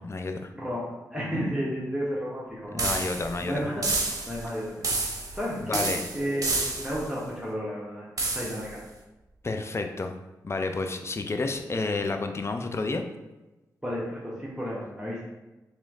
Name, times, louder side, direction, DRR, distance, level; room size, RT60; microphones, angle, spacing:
voice 1, 0.0-0.5 2.7-3.6 5.6-6.0 9.4-10.1 10.4-13.0, left 3 dB, 35° left, 6 dB, 0.5 m, -30 dB
voice 2, 0.5-2.9 3.4-3.9 4.3-4.8 5.3-8.8 13.8-15.2, equal, 10° right, -7 dB, 1.1 m, -32 dB
sound 1, 2.8-3.4 3.8-4.5 4.8-5.4 5.7-7.1 8.2-8.7, right 3 dB, 50° right, 0.8 m, -29 dB
3.1 x 3.1 x 3.7 m, 1.1 s
cardioid pair, 45°, 7 cm